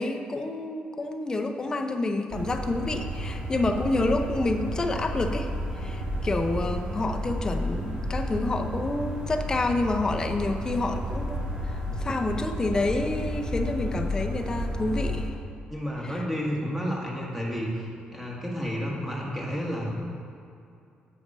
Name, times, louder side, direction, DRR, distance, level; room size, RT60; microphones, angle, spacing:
voice 1, 0.0-15.3 16.0-16.1, left 2 dB, 20° left, 5 dB, 0.6 m, -28 dB
sound 1, 2.3-15.3, equal, 30° right, 2.0 m, -32 dB
voice 2, 15.7-19.9, equal, 5° right, -4 dB, 1.6 m, -31 dB
8.6 x 6.4 x 5.4 m, 2.5 s
cardioid pair, 150°, 3 cm